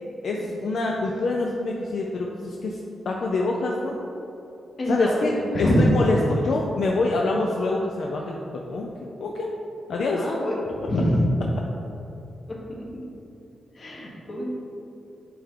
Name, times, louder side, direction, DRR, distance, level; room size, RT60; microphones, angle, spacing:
voice 1, 0.2-4.0 4.9-5.3 5.6-8.9 9.2-9.5 9.9-10.2, left 2 dB, 60° left, -1 dB, 0.5 m, -26 dB
voice 2, 4.8-6.0 10.1-11.3 12.9-13.0 13.7-14.5, equal, 40° left, -2 dB, 1.1 m, -24 dB
8.5 x 3.5 x 3.6 m, 2.8 s
wide cardioid pair, 140°, 0 cm